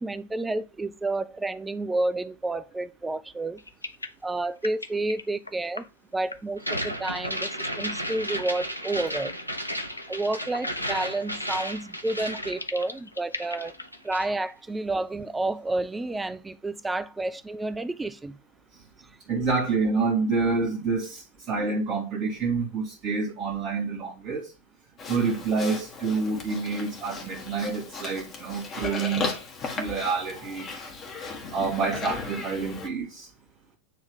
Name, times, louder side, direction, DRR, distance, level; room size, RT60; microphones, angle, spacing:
voice 1, 0.0-3.6 4.2-5.9 6.1-7.5 7.8-9.3 10.1-13.7 14.0-18.4 19.0-19.2, right 2 dB, 10° right, 0.5 m, -30 dB
sound 1, 3.6-5.9 6.3-6.6 8.8-11.0 11.6-11.7 12.3-14.2 14.5-14.6 14.9-15.0, left 3 dB, 80° left, 0.5 m, -40 dB
sound 2, 6.6-13.1 13.4-14.4, equal, 90° right, 0.7 m, -33 dB
voice 2, 19.3-24.5 25.1-29.3 29.8-30.7 31.5-33.3, right 4 dB, 35° right, 1.8 m, -28 dB
Livestock farm animals working animals, 25.0-32.9, left 4 dB, 30° left, 1.6 m, -36 dB
9.3 x 3.2 x 3.6 m
figure-of-eight pair, 90°, 0 cm